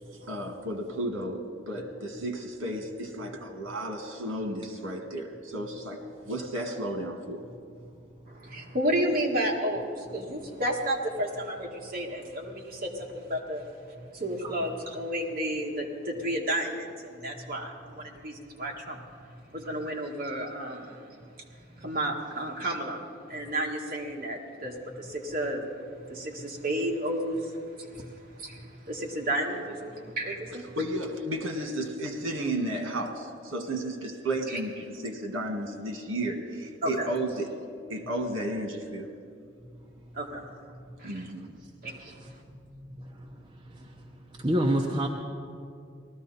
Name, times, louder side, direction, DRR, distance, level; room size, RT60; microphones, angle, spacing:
voice 1, 0.3-7.4 30.7-37.5 37.9-39.1 41.0-41.5, right 1 dB, 85° right, 5 dB, 1.6 m, -33 dB
voice 2, 8.3-13.6 14.1-19.0 19.5-21.1 21.8-23.0 23.3-25.6 26.1-28.1 28.4-30.7 34.5-34.6 36.8-37.1 40.1-40.4 41.0-41.3 41.8-42.1, right 1 dB, 45° right, -1 dB, 1.7 m, -32 dB
voice 3, 44.4-45.1, right 1 dB, 25° right, 0 dB, 0.7 m, -27 dB
19.0 x 13.5 x 4.2 m, 2.3 s
head